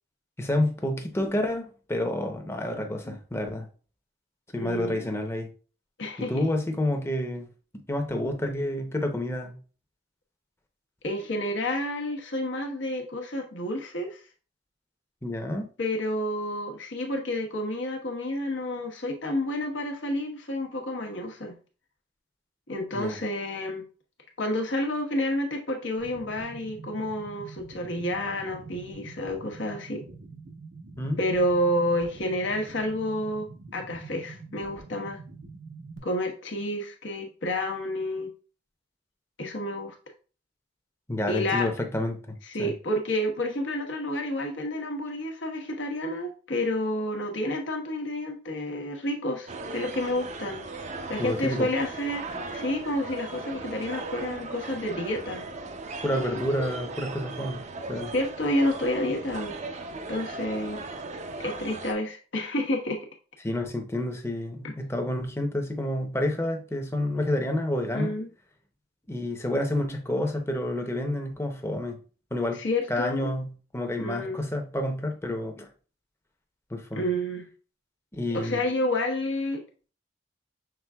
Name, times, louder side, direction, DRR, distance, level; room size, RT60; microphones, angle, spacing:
voice 1, 0.4-3.7 4.5-5.5 6.2-7.5 7.9-9.6 15.2-15.7 22.9-23.2 31.0-31.2 41.1-42.7 51.2-51.7 56.0-57.6 57.9-58.1 63.4-68.1 69.1-72.0 72.3-72.6 72.9-75.7 76.7-77.1 78.1-78.6, left 1 dB, 15° left, 0.7 m, -29 dB
voice 2, 4.6-5.2 6.0-6.4 11.0-14.2 15.8-21.6 22.7-23.8 24.4-30.0 31.2-35.2 36.0-38.3 39.4-39.9 41.3-41.7 42.5-55.4 56.1-56.4 58.1-59.5 60.1-60.8 61.4-63.1 64.6-64.7 67.9-68.3 72.6-73.3 74.0-74.4 77.0-77.5 78.3-79.6, left 1 dB, 75° left, 1.1 m, -30 dB
sound 1, 26.0-36.0, right 3 dB, 85° right, 0.9 m, -45 dB
sound 2, 49.5-61.9, right 3 dB, 40° right, 0.5 m, -38 dB
6.0 x 3.7 x 2.3 m
head